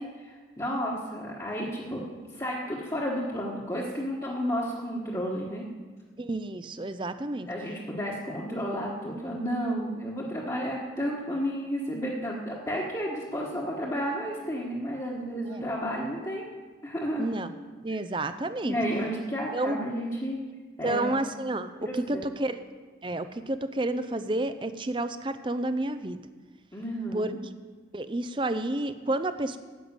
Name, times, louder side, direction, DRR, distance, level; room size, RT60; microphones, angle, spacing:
voice 1, 0.0-2.1 2.3-5.6 7.5-16.4 16.8-17.3 18.6-20.4 20.8-21.1 21.8-22.3 26.7-27.4, equal, 20° left, -6 dB, 1.4 m, -32 dB
voice 2, 6.2-7.5 15.5-15.6 17.2-17.5 17.8-18.8 19.5-19.8 20.8-21.7 22.1-22.6 23.0-26.2 27.1-27.3 27.9-29.6, right 2 dB, 25° right, 11 dB, 0.5 m, -30 dB
10.0 x 7.9 x 8.8 m, 1.4 s
head